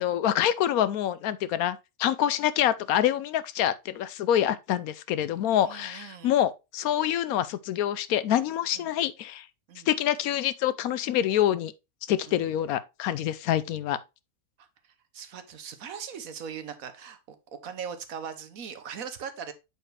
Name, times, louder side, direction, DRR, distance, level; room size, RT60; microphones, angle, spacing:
voice 1, 0.0-9.4 9.9-11.7 12.1-14.0, left 11 dB, 75° left, 1.0 m, -26 dB
voice 2, 5.6-6.4 8.7-8.9 9.7-9.9 12.3-12.5 14.6-19.5, right 7 dB, 70° right, 1.3 m, -40 dB
8.0 x 4.6 x 3.2 m
omnidirectional pair, 1.5 m